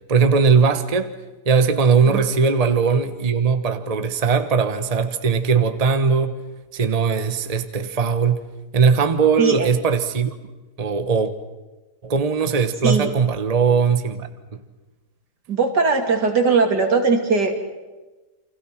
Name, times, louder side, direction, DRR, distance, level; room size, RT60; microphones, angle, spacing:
voice 1, 0.1-1.1 1.4-6.3 6.7-8.4 8.7-10.3 10.8-11.3 12.0-14.6, right 5 dB, 25° right, 1.2 m, -19 dB
voice 2, 9.4-9.7 12.8-13.1 15.5-17.6, right 4 dB, 75° right, 3.5 m, -19 dB
29.5 x 25.5 x 6.1 m
omnidirectional pair, 1.8 m